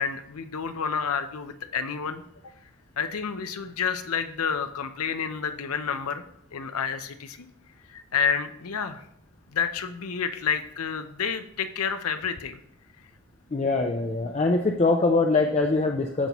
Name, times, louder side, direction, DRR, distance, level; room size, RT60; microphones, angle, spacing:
voice 1, 0.0-2.2 3.0-6.2 6.5-7.5 7.9-9.0 9.5-12.6, left 6 dB, 80° left, 10 dB, 0.7 m, -29 dB
voice 2, 13.5-16.3, left 3 dB, 30° left, 3 dB, 0.5 m, -23 dB
13.5 x 5.4 x 3.0 m, 0.75 s
head